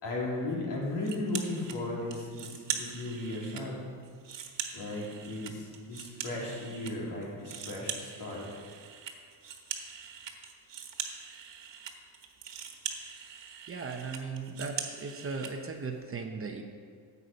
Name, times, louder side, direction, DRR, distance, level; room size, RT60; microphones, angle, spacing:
voice 1, 0.0-3.8 4.7-8.5, left 2 dB, 60° left, -4 dB, 3.5 m, -36 dB
sound 1, 1.0-1.8 2.1-3.6 4.0-6.9 7.2-15.5, right 8 dB, 65° right, 1.5 m, -41 dB
voice 2, 13.7-16.6, right 4 dB, 30° right, 3 dB, 0.8 m, -37 dB
14.0 x 8.3 x 5.2 m, 2.1 s
cardioid pair, 170°, 47 cm